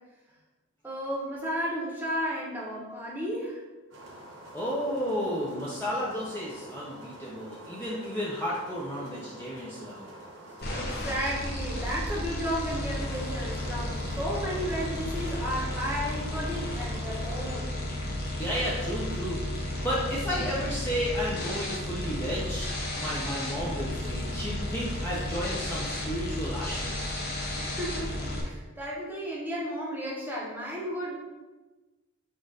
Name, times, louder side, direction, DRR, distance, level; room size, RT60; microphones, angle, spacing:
voice 1, 0.8-3.6 10.7-17.8 27.5-31.2, equal, 10° right, -4 dB, 0.9 m, -33 dB
sound 1, 3.9-17.6, right 1 dB, 65° right, 1.0 m, -47 dB
voice 2, 4.5-10.1 18.4-27.0, equal, 10° left, -7 dB, 0.5 m, -33 dB
sound 2, 10.6-28.4, left 1 dB, 45° left, 0.9 m, -33 dB
4.3 x 2.5 x 4.7 m, 1.2 s
head